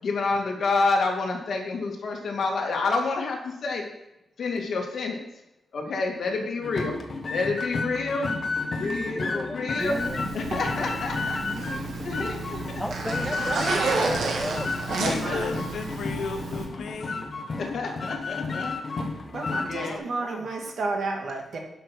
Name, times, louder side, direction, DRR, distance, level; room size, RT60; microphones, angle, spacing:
voice 1, 0.0-3.8 4.4-5.2 5.7-7.0 7.3-9.9 10.3-11.4 12.0-12.8 15.1-15.4 17.6-18.8 19.6-20.0, left 3 dB, 60° left, 0 dB, 2.4 m, -28 dB
sound 1, 6.6-20.0, left 3 dB, 40° left, 1.3 m, -32 dB
voice 2, 8.8-10.3 10.8-11.0 11.4-12.1 12.8-14.7 19.8-20.4, left 1 dB, 5° left, 6 dB, 0.4 m, -36 dB
Zipper (clothing), 9.8-16.7, right 4 dB, 90° right, 1.8 m, -32 dB
voice 3, 13.5-14.4 14.9-15.5 19.1-21.6, right 3 dB, 60° right, 1 dB, 2.4 m, -31 dB
voice 4, 14.9-17.3, left 4 dB, 80° left, 6 dB, 1.3 m, -34 dB
11.0 x 6.0 x 6.1 m, 0.87 s
wide cardioid pair, 140°, 0 cm